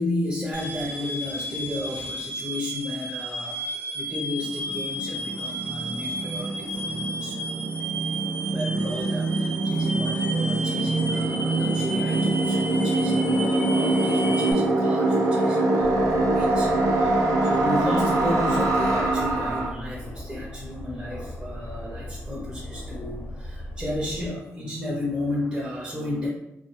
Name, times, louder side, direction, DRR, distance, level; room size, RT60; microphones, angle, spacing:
voice 1, 0.0-3.6 3.9-7.4 8.5-26.3, left 1 dB, 15° right, -5 dB, 0.6 m, -33 dB
sound 1, 0.5-14.5, right 1 dB, 40° right, 1.0 m, -33 dB
sound 2, 4.2-4.3 4.4-19.7, right 2 dB, 90° right, 0.4 m, -24 dB
Aircraft, 15.8-24.3, left 1 dB, 55° left, 0.6 m, -38 dB
2.2 x 2.2 x 3.1 m, 0.88 s
cardioid pair, 65°, 6 cm